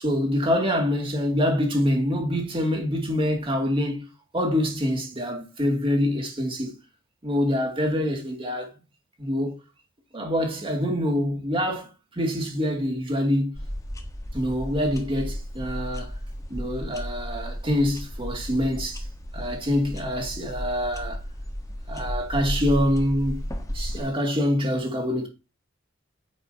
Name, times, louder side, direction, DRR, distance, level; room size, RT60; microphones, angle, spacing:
voice 1, 0.0-4.1 4.3-6.8 7.2-8.7 9.2-9.6 10.1-13.6 14.3-16.2 16.5-19.1 19.3-21.2 21.9-23.4 23.7-25.3, left 1 dB, 30° right, 2.4 m, -25 dB
sound 1, 13.5-24.0, equal, 15° left, 1.3 m, -34 dB
9.6 x 7.3 x 2.9 m
head